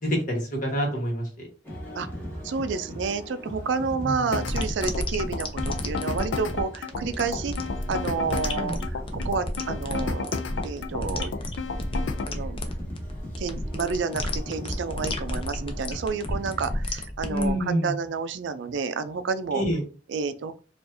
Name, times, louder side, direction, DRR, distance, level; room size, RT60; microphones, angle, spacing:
voice 1, 0.0-1.2 4.0-4.1 8.5-8.7 17.3-17.9 19.5-19.8, equal, 45° left, 0 dB, 1.5 m, -27 dB
sound 1, 1.6-16.8, equal, 10° left, 1.2 m, -39 dB
voice 2, 2.4-7.5 7.9-10.3 10.6-11.3 12.3-12.6 13.4-19.6 20.1-20.5, right 5 dB, 75° right, 12 dB, 0.4 m, -30 dB
sound 2, 4.3-12.3, left 4 dB, 80° left, 0.4 m, -32 dB
sound 3, 4.5-17.5, left 1 dB, 30° left, 0.5 m, -32 dB
4.7 x 2.5 x 2.7 m, 0.37 s
head